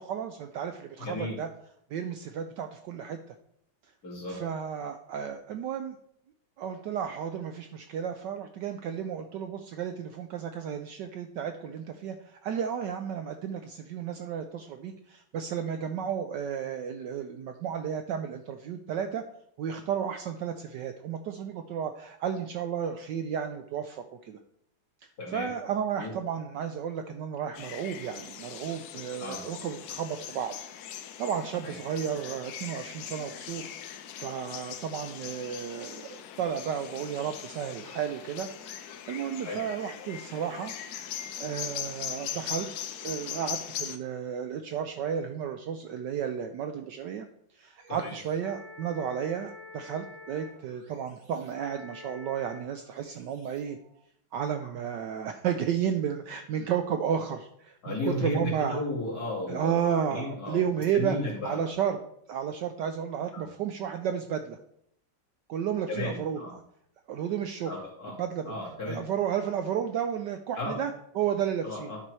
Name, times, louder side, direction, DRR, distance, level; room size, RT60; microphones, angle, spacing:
voice 1, 0.0-1.5 1.9-3.2 4.3-6.0 6.6-19.2 19.6-24.4 25.3-30.5 31.2-33.7 34.2-38.5 39.1-40.7 41.4-42.7 43.0-47.3 47.6-53.8 54.3-58.8 59.5-61.2 61.4-62.0 62.3-64.6 65.5-66.6 67.1-67.7 68.2-68.5 68.9-72.0, right 8 dB, 75° right, 7 dB, 1.1 m, -32 dB
voice 2, 1.0-1.4 4.0-4.4 25.2-25.5 26.0-26.1 29.2-29.4 31.6-31.8 39.4-39.6 47.9-48.1 57.8-60.6 60.9-61.7 63.3-63.4 65.9-66.5 67.7-68.2 68.5-69.0 70.6-70.8 71.6-72.0, left 2 dB, 45° left, -4 dB, 2.8 m, -34 dB
sound 1, 27.5-44.0, left 9 dB, 75° left, 0.8 m, -40 dB
sound 2, 47.8-54.0, left 2 dB, 55° right, 3.2 m, -49 dB
11.0 x 4.3 x 4.7 m, 0.70 s
omnidirectional pair, 2.3 m